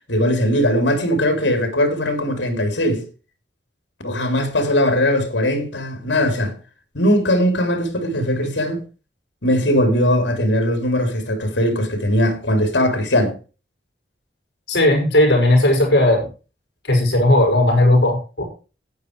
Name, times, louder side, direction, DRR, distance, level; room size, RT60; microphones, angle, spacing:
voice 1, 0.1-3.0 4.0-6.5 6.9-8.8 9.4-13.4, equal, 85° left, 3.5 m, -19 dB
voice 2, 14.7-16.3 16.9-18.4, left 1 dB, 65° left, 6.6 m, -16 dB
12.0 x 9.5 x 4.7 m
head